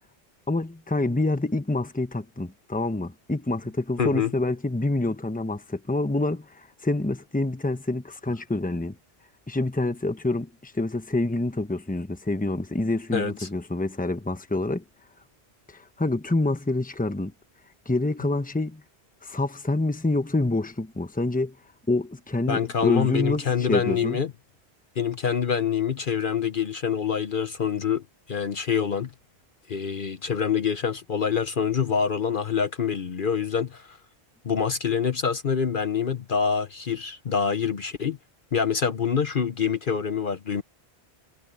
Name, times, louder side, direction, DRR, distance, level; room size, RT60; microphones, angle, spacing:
voice 1, 0.5-9.0 9.5-14.8 15.7-17.3 17.9-18.8 19.2-21.6 21.9-24.2, left 2 dB, 10° left, 1.0 m, -27 dB
voice 2, 4.0-4.3 13.1-13.5 22.5-24.3 25.0-29.1 29.7-34.0 34.4-38.2 38.5-40.6, left 7 dB, 55° left, 1.0 m, -26 dB
omnidirectional pair, 1.1 m